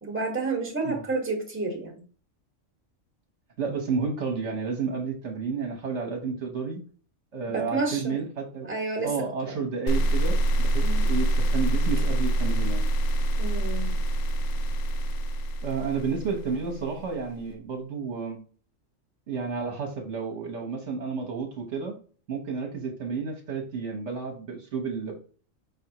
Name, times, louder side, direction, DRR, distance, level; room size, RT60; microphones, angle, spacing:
voice 1, 0.0-2.0 7.5-8.2 8.7-9.1 9.4-9.7 10.8-11.0 13.4-14.0, right 3 dB, 10° right, 0 dB, 1.2 m, -30 dB
voice 2, 3.6-6.8 7.3-8.7 9.0-12.8 15.6-18.4 19.3-21.9 22.3-25.2, right 5 dB, 60° right, 2 dB, 1.2 m, -31 dB
sound 1, 9.9-17.0, right 1 dB, 80° left, 1.0 m, -25 dB
5.4 x 3.5 x 2.8 m, 0.41 s
omnidirectional pair, 1.4 m